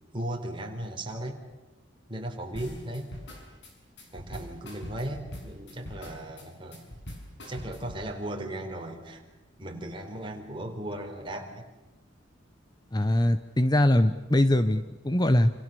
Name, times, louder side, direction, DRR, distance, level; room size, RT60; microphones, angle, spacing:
voice 1, 0.1-1.4 2.1-3.1 4.1-6.9 7.4-9.2 9.6-11.7, right 1 dB, 25° right, 2 dB, 4.1 m, -36 dB
sound 1, 2.5-8.1, left 1 dB, 65° left, 6.8 m, -43 dB
voice 2, 12.9-15.5, left 1 dB, 20° left, 11 dB, 0.8 m, -22 dB
28.0 x 28.0 x 7.0 m, 1.1 s
head